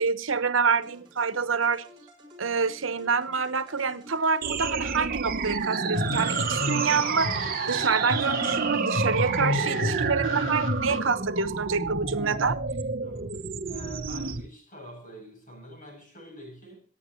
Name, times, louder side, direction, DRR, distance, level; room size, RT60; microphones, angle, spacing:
voice 1, 0.0-1.8 2.4-12.6, right 5 dB, 80° right, 13 dB, 1.0 m, -27 dB
sound 1, 0.7-8.4, left 1 dB, 25° right, 5.3 m, -52 dB
sound 2, 4.4-14.4, right 4 dB, 50° right, 1.0 m, -29 dB
sound 3, 5.9-11.0, left 3 dB, 70° left, 1.0 m, -32 dB
voice 2, 13.0-16.8, right 1 dB, 40° left, 2 dB, 7.6 m, -45 dB
26.5 x 9.4 x 3.1 m, 0.41 s
head